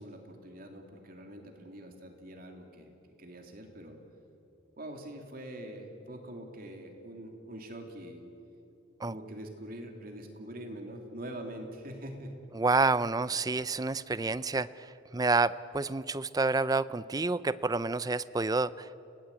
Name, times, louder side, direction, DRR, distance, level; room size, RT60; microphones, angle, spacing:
voice 1, 0.0-2.9 3.2-4.0 4.8-8.2 9.0-12.3, right 1 dB, 45° right, 3 dB, 3.0 m, -44 dB
voice 2, 12.5-14.9 15.1-19.0, right 3 dB, 20° right, 16 dB, 0.5 m, -29 dB
29.5 x 18.5 x 8.5 m, 2.9 s
head